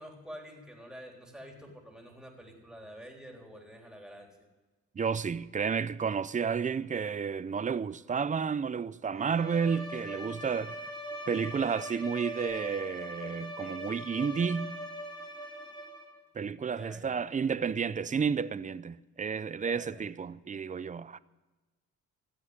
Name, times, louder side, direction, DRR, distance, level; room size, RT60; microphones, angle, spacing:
voice 1, 0.0-4.3 16.7-17.3 19.6-20.1, equal, ahead, 3.7 m, -48 dB
voice 2, 4.9-10.8 11.3-14.8 16.3-21.2, right 6 dB, 25° right, 0.5 m, -31 dB
Bowed string instrument, 9.1-16.2, equal, 15° left, 2.8 m, -41 dB
14.5 x 8.2 x 9.6 m
cardioid pair, 90°, 30 cm